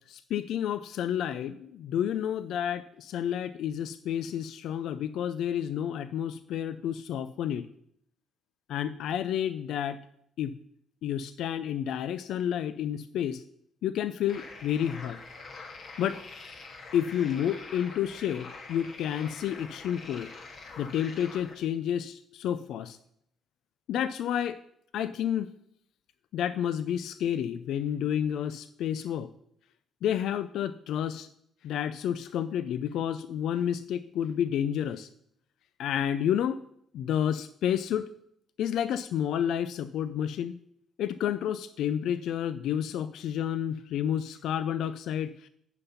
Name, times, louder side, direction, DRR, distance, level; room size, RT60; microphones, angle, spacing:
voice 1, 0.1-7.7 8.7-10.0 10.4-10.6 11.0-13.4 13.8-15.2 16.0-16.2 16.9-20.3 20.8-23.0 23.9-24.6 24.9-25.5 26.3-29.3 30.0-31.3 31.6-35.1 35.8-36.6 36.9-38.1 38.6-40.6 41.0-45.5, left 9 dB, 80° left, 13 dB, 0.3 m, -30 dB
sound 1, 14.3-21.6, left 3 dB, 60° left, 1.7 m, -45 dB
9.0 x 5.8 x 5.7 m, 0.71 s
cardioid pair, 90°, 0 cm